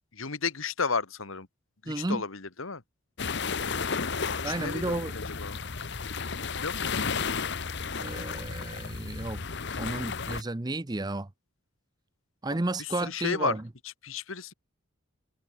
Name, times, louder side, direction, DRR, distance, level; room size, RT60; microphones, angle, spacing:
voice 1, 0.1-1.5 1.8-2.8 4.1-5.0 5.4-5.6 6.5-7.4 12.8-13.5 14.0-14.5, left 4 dB, 70° left, 1.6 m, -33 dB
voice 2, 1.9-2.2 4.4-5.2 7.9-9.4 9.8-11.3 12.4-13.7, right 2 dB, 20° right, 0.6 m, -32 dB
sound 1, 3.2-10.4, left 5 dB, 50° left, 1.1 m, -33 dB
head